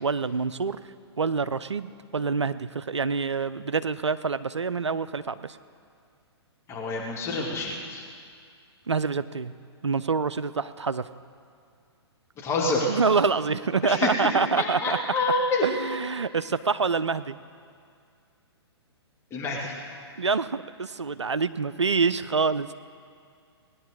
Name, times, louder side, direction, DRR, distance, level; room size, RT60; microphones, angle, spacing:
voice 1, 0.0-0.8 1.2-5.6 8.9-9.5 9.8-11.1 12.9-15.0 15.6-17.4 20.2-22.7, right 5 dB, 85° right, 14 dB, 0.5 m, -26 dB
voice 2, 6.7-8.0 12.4-12.9 13.9-14.1 14.6-15.6 19.3-19.7, left 2 dB, 20° left, -2 dB, 1.9 m, -27 dB
18.5 x 10.5 x 4.8 m, 2.3 s
figure-of-eight pair, 120°, 14 cm